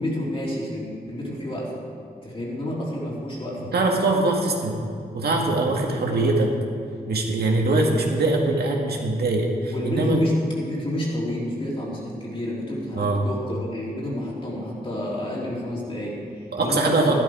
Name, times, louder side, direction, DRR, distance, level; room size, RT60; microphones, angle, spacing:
voice 1, 0.0-1.7 2.2-3.7 5.9-6.3 9.7-17.1, left 1 dB, 35° left, -5 dB, 3.2 m, -29 dB
voice 2, 3.7-4.8 5.1-6.5 7.1-10.3 13.0-13.3 16.5-17.1, right 2 dB, 80° right, 0 dB, 1.9 m, -22 dB
13.5 x 11.5 x 4.9 m, 2.4 s
wide cardioid pair, 160°, 16 cm